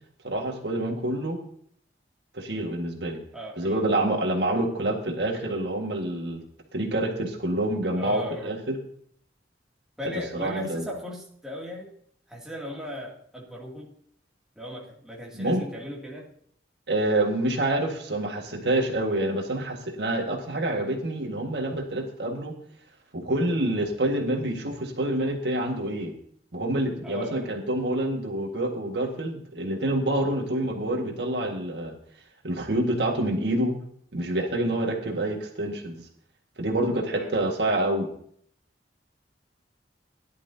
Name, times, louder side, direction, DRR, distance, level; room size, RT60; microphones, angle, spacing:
voice 1, 0.2-1.4 2.3-3.2 3.6-6.4 6.7-8.8 10.3-10.8 15.3-15.6 16.9-22.5 23.1-26.1 26.5-31.9 32.4-33.8 34.1-36.0 36.6-38.1, right 1 dB, 65° right, 2 dB, 1.8 m, -27 dB
voice 2, 3.3-3.8 7.9-8.5 10.0-11.9 12.3-13.9 14.6-16.3 27.0-27.5 37.1-37.3, left 1 dB, 5° right, -4 dB, 2.5 m, -37 dB
17.5 x 11.0 x 2.8 m, 0.62 s
head